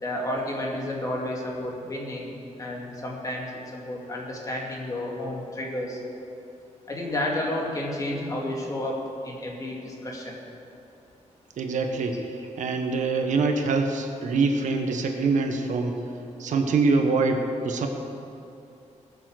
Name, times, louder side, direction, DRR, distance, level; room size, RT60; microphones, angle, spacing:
voice 1, 0.0-6.0 6.9-9.0 9.2-10.3, left 1 dB, 25° left, -2 dB, 2.3 m, -31 dB
voice 2, 11.6-16.0 16.4-17.9, right 4 dB, 85° right, 4 dB, 1.3 m, -24 dB
19.0 x 7.3 x 6.5 m, 2.9 s
wide cardioid pair, 175°, 13 cm